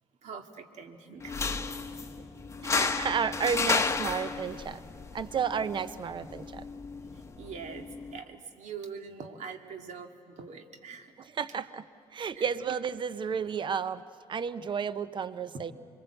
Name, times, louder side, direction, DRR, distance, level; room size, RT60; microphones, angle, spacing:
voice 1, 0.2-1.4 1.7-1.9 7.1-11.3 12.4-12.5, right 6 dB, 60° right, 5 dB, 2.1 m, -44 dB
sound 1, 1.2-8.2, left 4 dB, 20° left, 1.3 m, -33 dB
voice 2, 2.6-4.8 5.1-6.6 11.4-11.8 12.1-14.0 14.3-15.7, right 6 dB, 35° right, 14 dB, 0.8 m, -32 dB
26.0 x 22.5 x 7.8 m, 2.3 s
supercardioid pair, 75°, 13 cm